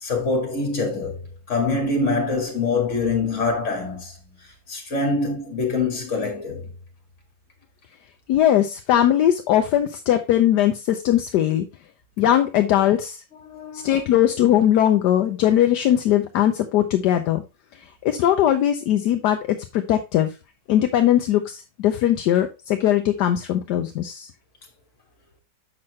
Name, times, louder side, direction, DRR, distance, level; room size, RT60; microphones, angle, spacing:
voice 1, 0.0-1.2 1.5-4.4 4.7-6.6 13.4-14.0, left 3 dB, 45° left, 2.5 m, -25 dB
voice 2, 8.3-11.7 12.2-13.2 13.7-17.4 17.7-20.4 20.7-24.3, left 11 dB, 75° left, 1.2 m, -20 dB
7.6 x 6.0 x 3.0 m
omnidirectional pair, 1.9 m